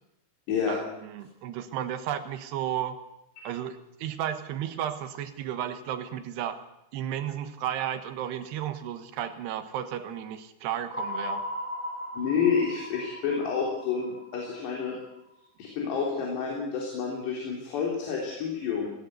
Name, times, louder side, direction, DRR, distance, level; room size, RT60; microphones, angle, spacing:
voice 1, 0.7-3.0 3.4-6.6 6.9-11.4, right 10 dB, 80° right, 9 dB, 3.4 m, -33 dB
sound 1, 10.9-15.2, left 1 dB, 5° left, 5.0 m, -37 dB
voice 2, 12.1-15.0 15.6-18.9, left 6 dB, 85° left, -2 dB, 5.7 m, -29 dB
18.5 x 17.5 x 8.1 m, 0.83 s
omnidirectional pair, 4.8 m